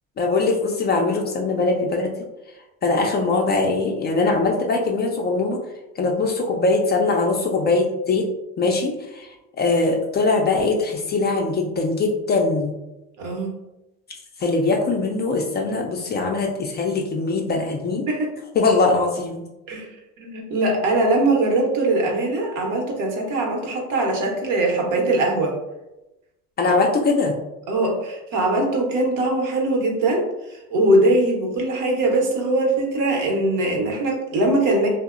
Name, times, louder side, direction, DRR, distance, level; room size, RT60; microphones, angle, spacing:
voice 1, 0.2-2.1 2.8-5.6 6.0-8.3 8.6-9.3 9.6-12.7 14.4-18.0 18.6-19.5 26.6-27.4, left 3 dB, 30° left, 1 dB, 0.4 m, -21 dB
voice 2, 13.2-13.5 18.1-18.3 19.7-19.9 20.2-25.6 27.7-30.2 30.5-34.9, right 2 dB, 60° right, 1 dB, 0.8 m, -21 dB
2.7 x 2.0 x 2.4 m, 0.96 s
supercardioid pair, 90°, 35 cm